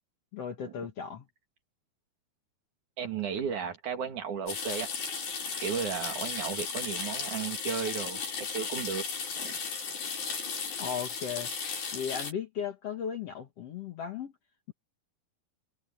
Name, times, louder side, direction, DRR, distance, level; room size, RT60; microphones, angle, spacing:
voice 1, 0.3-1.3 10.8-11.5 11.9-14.3, left 7 dB, 55° left, 2.0 m, -36 dB
voice 2, 3.0-4.9 5.6-8.2 8.5-9.1 9.4-9.5, right 7 dB, 60° right, 3.5 m, -34 dB
sound 1, 4.5-12.3, left 5 dB, 85° left, 6.9 m, -35 dB
omnidirectional pair, 4.1 m